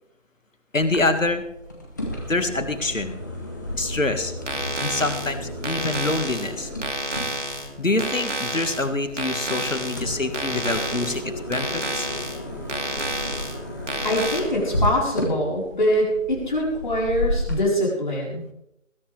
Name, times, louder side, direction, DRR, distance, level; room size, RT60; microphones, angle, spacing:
voice 1, 0.7-1.4 2.3-3.2 3.8-4.3 4.8-6.7 7.8-12.1, left 2 dB, 80° left, 8 dB, 2.0 m, -25 dB
sound 1, 0.8-17.6, left 1 dB, 15° left, 1.3 m, -33 dB
sound 2, 4.4-14.4, right 1 dB, 70° right, 2.6 m, -31 dB
voice 2, 14.0-18.4, equal, 35° left, -3 dB, 4.5 m, -23 dB
20.0 x 11.0 x 3.4 m, 0.82 s
figure-of-eight pair, 165°, 38 cm